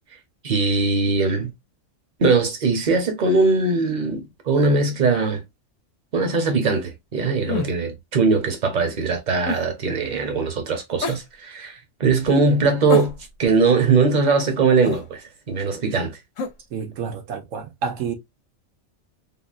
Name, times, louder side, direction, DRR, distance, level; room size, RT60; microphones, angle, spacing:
voice 1, 0.4-1.5 2.2-5.4 6.1-16.2, right 4 dB, 40° right, 0.8 m, -21 dB
sound 1, 7.5-7.8 9.5-9.7 11.0-11.2 12.9-13.5 14.9-15.1 16.4-16.6, left 5 dB, 80° left, 1.0 m, -28 dB
voice 2, 16.7-18.1, right 6 dB, 80° right, 1.1 m, -29 dB
3.6 x 2.0 x 2.4 m
omnidirectional pair, 1.3 m